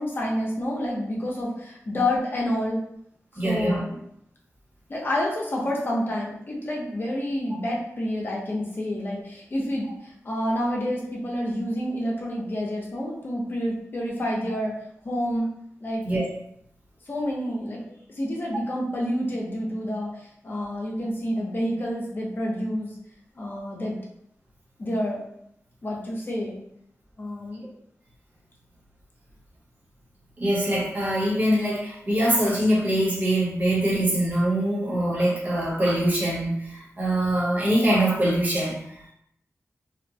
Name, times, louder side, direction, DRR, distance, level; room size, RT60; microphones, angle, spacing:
voice 1, 0.0-2.8 3.4-4.0 4.9-14.8 15.0-15.5 15.8-16.0 17.1-17.8 18.2-23.0 23.4-24.0 24.8-25.2 25.8-26.6 27.2-27.6, left 1 dB, 40° left, -3 dB, 0.7 m, -28 dB
voice 2, 3.4-3.8 16.0-16.2 30.4-39.1, right 1 dB, 35° right, -5 dB, 0.9 m, -23 dB
2.8 x 2.1 x 2.6 m, 0.73 s
wide cardioid pair, 140°, 5 cm